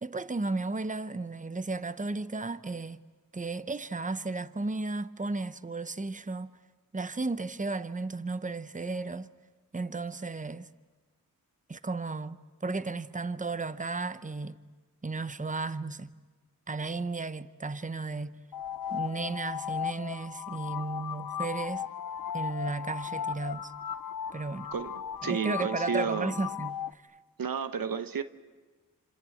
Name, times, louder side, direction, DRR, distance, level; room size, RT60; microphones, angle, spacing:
voice 1, 0.0-3.0 3.3-6.5 6.9-9.3 9.7-10.7 11.7-14.6 15.0-16.1 16.7-18.4 18.9-21.9 22.3-23.7 24.3-24.7 25.2-27.0, right 3 dB, 20° right, 1.0 m, -34 dB
sound 1, 18.5-26.9, left 9 dB, 85° left, 0.8 m, -36 dB
voice 2, 24.7-26.3 27.4-28.2, right 7 dB, 75° right, 1.0 m, -32 dB
28.5 x 26.5 x 7.9 m
cardioid pair, 45°, 34 cm